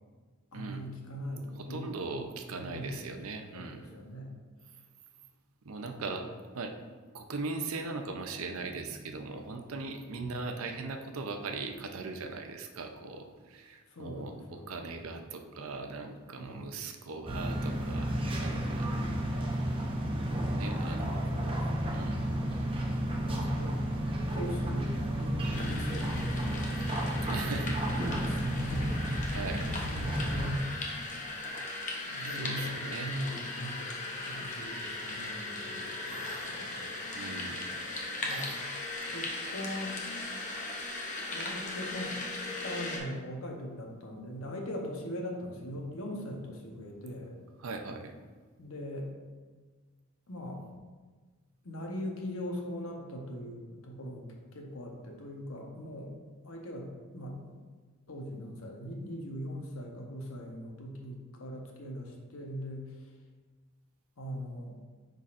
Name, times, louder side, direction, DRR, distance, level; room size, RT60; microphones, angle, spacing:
voice 1, 0.5-2.2 2.5-3.1 3.5-4.3 5.9-6.3 10.2-10.6 13.9-14.8 16.4-16.8 18.8-19.2 21.0-21.7 23.2-23.8 24.3-29.0 29.8-30.7 32.0-33.9 34.2-36.8 38.2-38.5 39.1-40.0 41.3-42.2 42.6-47.4 48.6-49.1 50.3-50.6 51.6-54.3 54.5-56.1 56.4-57.4 58.1-62.8 64.2-64.8, equal, 70° left, 0 dB, 1.0 m, -40 dB
voice 2, 1.6-3.9 5.6-6.7 7.1-18.9 20.5-21.3 21.9-22.2 27.2-27.8 29.3-29.8 32.2-33.1 37.1-37.7 47.6-48.1, right 3 dB, 70° right, 5 dB, 0.6 m, -39 dB
sound 1, 17.3-30.5, equal, 25° right, 0.7 m, -32 dB
sound 2, 25.5-43.0, left 2 dB, 35° left, 0.9 m, -38 dB
9.7 x 3.9 x 2.5 m, 1.4 s
head